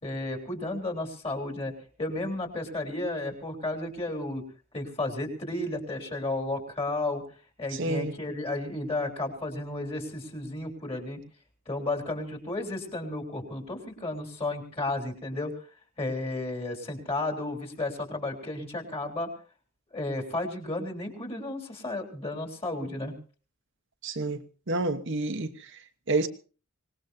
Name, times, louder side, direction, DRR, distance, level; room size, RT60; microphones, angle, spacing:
voice 1, 0.0-1.7 2.0-4.4 4.7-7.2 7.6-11.2 11.7-15.5 16.0-19.3 19.9-23.1, left 2 dB, 30° left, 3.5 m, -33 dB
voice 2, 7.8-8.1 24.0-24.4 24.7-25.5 26.1-26.3, right 2 dB, 60° right, 1.0 m, -28 dB
25.0 x 19.0 x 2.7 m
head